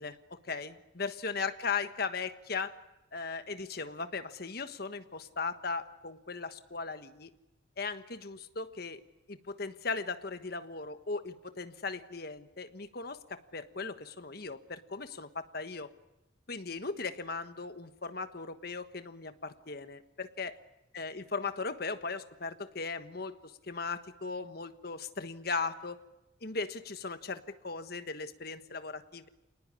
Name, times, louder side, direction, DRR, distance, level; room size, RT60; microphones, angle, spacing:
voice 1, 0.0-2.7 3.1-7.3 7.8-9.0 9.3-15.9 16.5-20.5 20.9-26.0 26.4-29.3, left 4 dB, 55° left, 10 dB, 1.4 m, -38 dB
27.5 x 19.0 x 9.9 m, 0.99 s
head